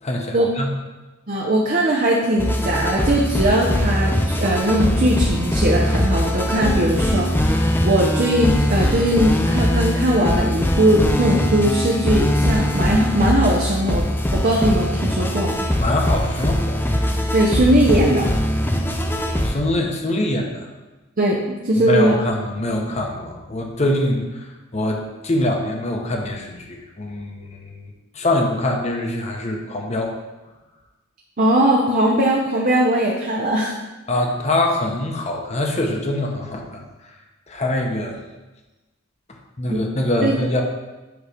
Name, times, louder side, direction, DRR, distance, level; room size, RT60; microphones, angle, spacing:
voice 1, 0.0-0.7 15.8-16.9 19.4-20.7 21.8-27.8 28.1-30.1 34.1-37.1 37.5-38.2 39.6-40.6, left 1 dB, 35° left, 1 dB, 0.9 m, -24 dB
voice 2, 1.3-14.0 14.3-15.5 17.3-18.3 21.2-21.4 21.6-22.1 31.4-33.7 39.7-39.8 40.2-40.3, right 1 dB, 40° right, -1 dB, 0.7 m, -19 dB
sound 1, 2.4-19.6, equal, 10° left, 0.5 m, -21 dB
8.0 x 3.2 x 4.9 m, 1.1 s
head